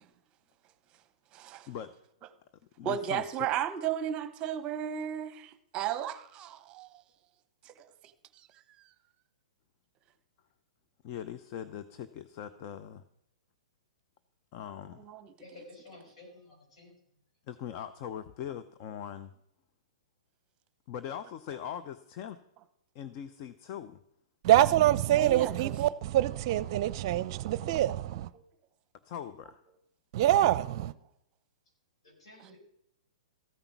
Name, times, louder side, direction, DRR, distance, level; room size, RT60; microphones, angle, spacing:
voice 1, 1.3-1.7 2.8-6.9 7.6-7.9 8.4-8.5 15.0-15.3 25.1-25.7 32.4-32.6, right 10 dB, 30° right, 0.9 m, -34 dB
voice 2, 2.8-3.5 11.0-13.0 14.5-15.0 17.5-19.3 20.9-22.4 22.9-24.0 29.0-29.6, left 9 dB, 40° left, 0.7 m, -41 dB
voice 3, 15.4-16.9 32.0-32.6, left 2 dB, 70° left, 5.8 m, -52 dB
voice 4, 24.4-28.3 30.1-30.9, right 13 dB, 45° right, 0.6 m, -25 dB
14.5 x 8.9 x 6.0 m
hypercardioid pair, 120°, 3 cm